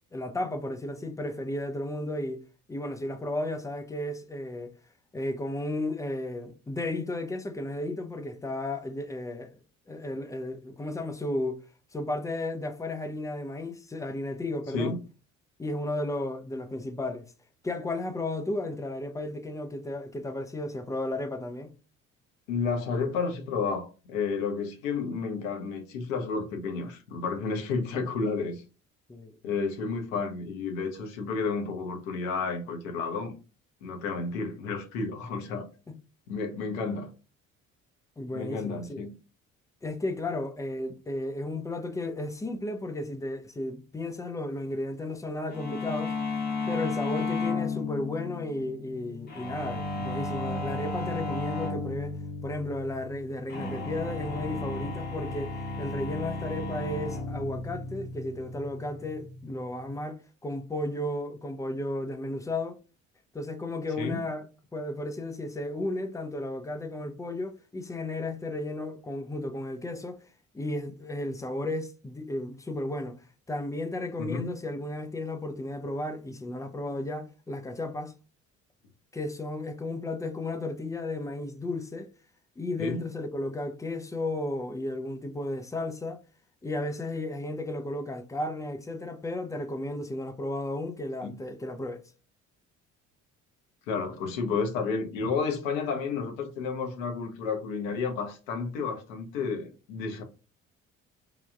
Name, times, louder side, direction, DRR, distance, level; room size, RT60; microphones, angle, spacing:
voice 1, 0.1-2.4 2.7-4.8 5.1-9.6 9.9-11.6 11.9-14.9 15.6-17.3 17.6-21.7 29.1-29.3 35.9-36.0 38.2-39.0 39.8-46.1 46.7-52.2 52.4-62.8 63.3-64.5 64.7-70.2 70.5-78.1 79.1-82.1 82.6-86.2 86.6-92.0, left 2 dB, 10° left, 0.3 m, -34 dB
voice 2, 22.5-28.6 29.4-33.3 33.8-35.7 36.3-37.1 38.3-39.1 64.0-64.2 74.2-74.5 82.8-83.0 91.2-91.3 93.9-100.2, left 4 dB, 70° left, 0.8 m, -31 dB
sound 1, 45.5-60.0, left 3 dB, 25° left, 0.8 m, -34 dB
3.3 x 2.3 x 2.3 m
figure-of-eight pair, 50°, 40 cm